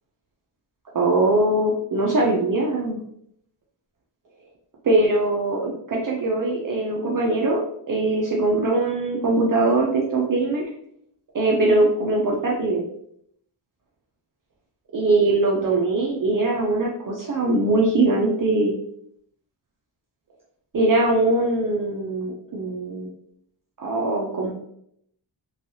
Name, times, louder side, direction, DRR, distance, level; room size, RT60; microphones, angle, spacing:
voice 1, 0.9-3.0 4.8-7.6 7.9-10.6 11.3-12.8 14.9-18.8 20.7-23.1 23.8-24.5, right 2 dB, 45° right, -3 dB, 0.5 m, -21 dB
3.1 x 2.3 x 2.6 m, 0.70 s
wide cardioid pair, 155°, 47 cm